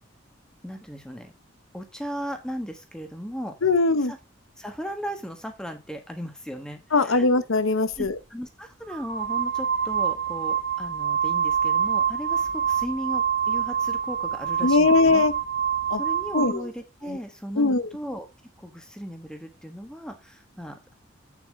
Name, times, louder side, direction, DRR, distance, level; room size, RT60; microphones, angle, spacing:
voice 1, 0.6-1.3 1.7-3.5 4.1-4.2 4.6-7.3 8.0-15.2 16.0-18.3 18.6-20.9, equal, 5° left, 1.3 m, -36 dB
voice 2, 3.6-4.1 6.9-8.1 14.6-15.3 15.9-16.0 16.3-16.7 17.1-17.2 17.6-17.9, left 3 dB, 90° left, 0.9 m, -21 dB
sound 1, 7.9-8.1 8.9-16.6, right 8 dB, 55° right, 1.2 m, -26 dB
8.4 x 7.1 x 3.6 m
head